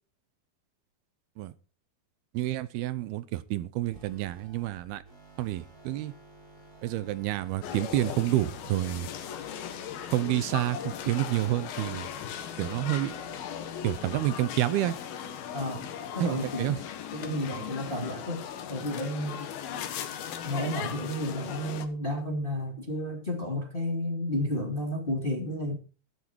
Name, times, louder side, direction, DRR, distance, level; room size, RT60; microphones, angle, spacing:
voice 1, 2.3-5.0 5.4-6.1 6.8-9.1 10.1-12.1 12.6-13.2 13.8-15.0 16.2-16.8, right 15 dB, 80° right, 2.6 m, -29 dB
sound 1, 3.9-13.9, right 3 dB, 20° right, 6.9 m, -53 dB
sound 2, 7.6-21.9, left 9 dB, 75° left, 3.1 m, -38 dB
voice 2, 15.5-15.9 16.1-16.8 17.1-19.5 20.4-25.7, left 1 dB, 20° left, 1.9 m, -32 dB
12.5 x 12.0 x 4.6 m
omnidirectional pair, 4.5 m